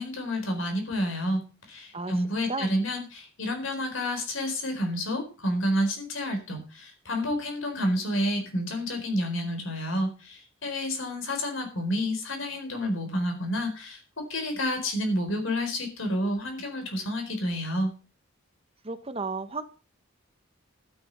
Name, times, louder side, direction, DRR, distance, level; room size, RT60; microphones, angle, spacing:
voice 1, 0.0-1.4 1.7-17.9, equal, 70° left, 5 dB, 4.3 m, -29 dB
voice 2, 1.9-2.7 18.8-19.6, right 3 dB, 30° right, 10 dB, 1.1 m, -34 dB
12.5 x 9.7 x 5.4 m, 0.34 s
head